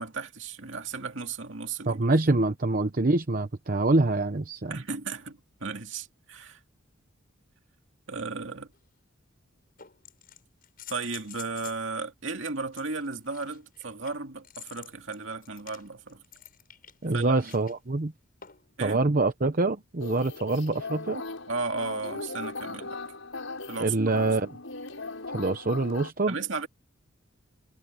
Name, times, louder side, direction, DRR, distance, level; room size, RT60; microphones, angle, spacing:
voice 1, 0.0-2.1 4.7-6.6 8.1-8.7 10.9-16.2 17.1-17.5 18.8-19.0 21.5-23.0 23.7-24.4 26.3-26.7, right 4 dB, 65° right, 2.4 m, -35 dB
voice 2, 1.9-4.8 17.0-18.1 18.8-21.2 23.8-24.5 25.3-26.3, right 2 dB, 45° right, 0.9 m, -25 dB
sound 1, 8.7-8.8 9.8-11.9 12.7-17.7 18.4-18.8 20.4-20.5, left 10 dB, 45° left, 6.9 m, -49 dB
sound 2, 20.0-26.1, left 3 dB, 70° left, 6.4 m, -38 dB
head